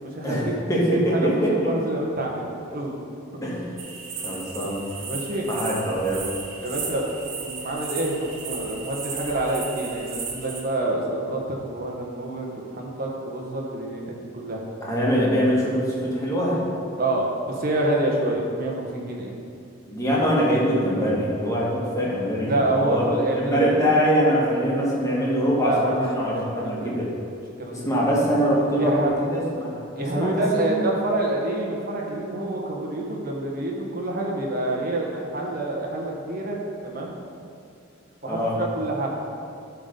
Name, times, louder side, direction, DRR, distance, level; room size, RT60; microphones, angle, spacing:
voice 1, 0.0-0.6 0.9-1.3 1.6-3.0 3.3-3.4 5.1-5.5 6.6-7.1 7.4-14.6 17.0-19.3 22.4-23.7 25.6-25.9 26.6-26.9 27.6-27.9 28.8-29.1 30.0-37.2 38.2-39.1, right 2 dB, 50° right, -2 dB, 1.4 m, -27 dB
voice 2, 0.7-1.7 3.4-3.7 4.2-4.8 5.5-6.3 14.8-16.6 19.9-23.1 23.3-27.1 27.7-29.8 30.2-30.8 38.2-38.6, equal, 15° left, -6 dB, 1.8 m, -23 dB
sound 1, 3.8-10.6, right 5 dB, 75° right, 1.2 m, -35 dB
12.0 x 4.0 x 5.3 m, 2.4 s
head